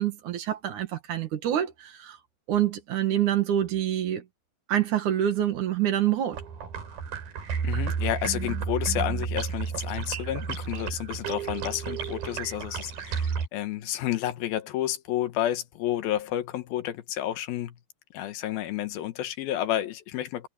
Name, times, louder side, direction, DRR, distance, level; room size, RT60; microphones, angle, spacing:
voice 1, 0.0-2.2 2.5-4.2 4.7-6.4, right 11 dB, 60° right, 2.8 m, -26 dB
sound 1, 6.3-13.5, right 6 dB, 80° right, 5.1 m, -32 dB
voice 2, 7.6-17.8 18.1-20.5, left 12 dB, 90° left, 3.1 m, -30 dB
omnidirectional pair, 4.2 m